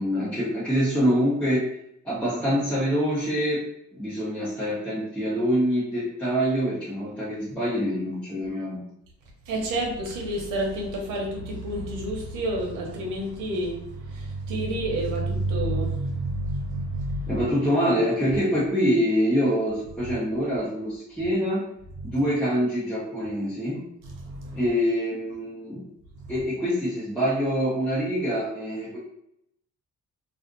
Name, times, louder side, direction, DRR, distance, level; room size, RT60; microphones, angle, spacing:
voice 1, 0.0-1.7 2.0-8.8 17.3-21.6 22.0-23.8 24.5-25.9 26.3-29.0, equal, 5° left, -9 dB, 0.9 m, -25 dB
voice 2, 9.5-17.4 22.0-22.1 24.0-24.6, right 1 dB, 90° right, 0 dB, 0.8 m, -29 dB
2.4 x 2.4 x 2.5 m, 0.76 s
cardioid pair, 90°, 30 cm